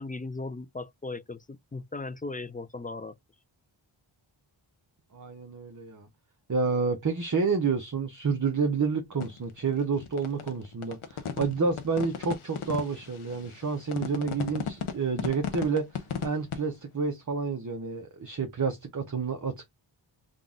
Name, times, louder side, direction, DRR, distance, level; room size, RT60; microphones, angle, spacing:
voice 1, 0.0-3.2, left 3 dB, 20° left, 0.3 m, -37 dB
voice 2, 5.1-6.1 6.5-19.7, right 5 dB, 40° right, 0.8 m, -29 dB
sound 1, 9.2-16.6, left 7 dB, 90° left, 0.7 m, -35 dB
3.8 x 2.4 x 3.6 m
wide cardioid pair, 60°, 49 cm